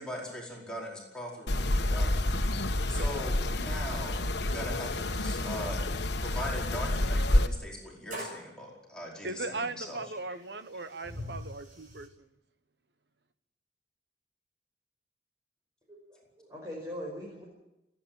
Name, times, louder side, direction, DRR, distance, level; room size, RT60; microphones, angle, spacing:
voice 1, 0.0-5.8 6.2-10.0, equal, 5° left, -3 dB, 4.8 m, -41 dB
sound 1, 1.5-7.5, left 1 dB, 70° left, 1.4 m, -29 dB
sound 2, 8.1-8.5 9.7-9.8 10.3-12.1, equal, 50° right, 5.7 m, -43 dB
voice 2, 9.2-12.3, right 3 dB, 70° right, 11 dB, 1.3 m, -38 dB
voice 3, 15.9-17.5, equal, 20° right, -2 dB, 5.4 m, -41 dB
29.0 x 10.0 x 8.9 m, 0.91 s
head